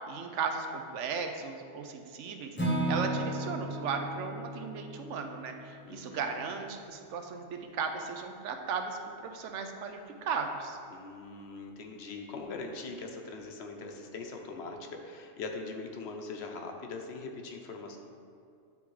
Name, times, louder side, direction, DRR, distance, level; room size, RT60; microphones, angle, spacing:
voice 1, 0.1-10.8, right 5 dB, 80° right, 4 dB, 0.9 m, -36 dB
Acoustic guitar / Strum, 2.6-6.6, right 1 dB, 10° left, 0.7 m, -35 dB
voice 2, 5.8-6.3 10.9-18.0, left 3 dB, 65° left, 3 dB, 0.9 m, -41 dB
9.6 x 3.5 x 3.1 m, 2.4 s
omnidirectional pair, 1.2 m